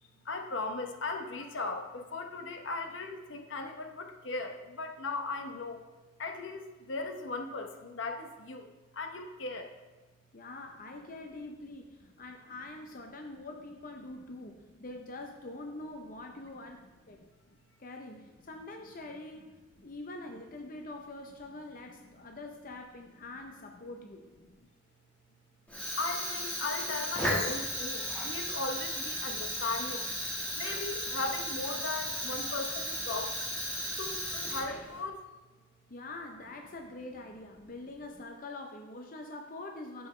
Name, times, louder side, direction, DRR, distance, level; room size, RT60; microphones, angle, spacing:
voice 1, 0.2-5.8 6.2-8.7 8.9-9.7 17.2-17.3 26.0-30.1 30.5-33.4 34.0-35.2, left 3 dB, 70° left, 5 dB, 0.9 m, -37 dB
voice 2, 10.3-17.2 17.8-24.3 35.9-40.1, left 2 dB, 45° left, 3 dB, 0.7 m, -44 dB
Fire, 25.7-35.0, equal, 5° left, 1.5 m, -35 dB
11.0 x 7.0 x 3.2 m, 1.2 s
head